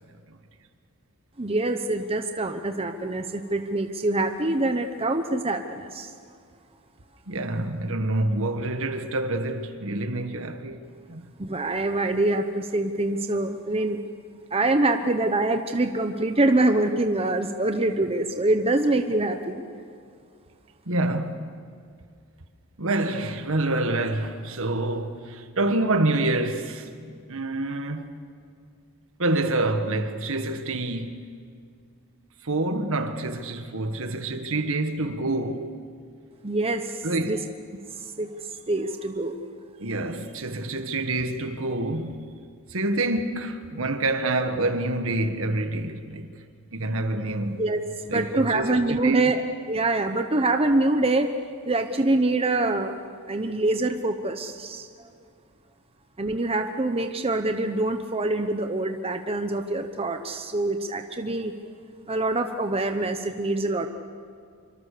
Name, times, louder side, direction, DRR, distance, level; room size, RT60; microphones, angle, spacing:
voice 1, 1.4-6.1 11.4-14.0 14.5-19.6 36.4-37.4 38.0-38.3 38.7-39.4 47.6-49.4 49.7-51.3 51.7-52.9 53.3-55.1 56.2-61.5 62.1-63.9, right 2 dB, 25° right, 1.0 m, -25 dB
voice 2, 7.3-11.3 20.9-21.6 22.8-26.9 27.3-28.1 29.2-31.3 32.4-35.7 37.0-37.5 39.8-42.4 42.7-46.3 46.7-47.6 48.1-49.3, right 2 dB, 65° right, 1.7 m, -27 dB
26.0 x 24.5 x 6.8 m
head